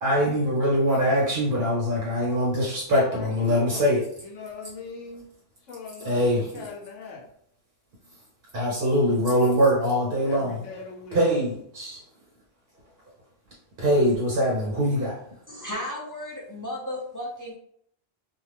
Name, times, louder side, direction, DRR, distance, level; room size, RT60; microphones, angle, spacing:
voice 1, 0.0-4.0 6.0-6.6 8.5-10.6 11.1-12.0 13.8-15.1, equal, 55° right, -5 dB, 1.1 m, -23 dB
voice 2, 2.9-3.9 4.2-5.3 5.7-6.2 6.5-7.2 10.3-11.2, left 4 dB, 80° left, 0 dB, 1.0 m, -40 dB
voice 3, 15.5-17.5, left 1 dB, 25° left, -5 dB, 0.4 m, -34 dB
2.5 x 2.3 x 3.3 m, 0.68 s
omnidirectional pair, 1.3 m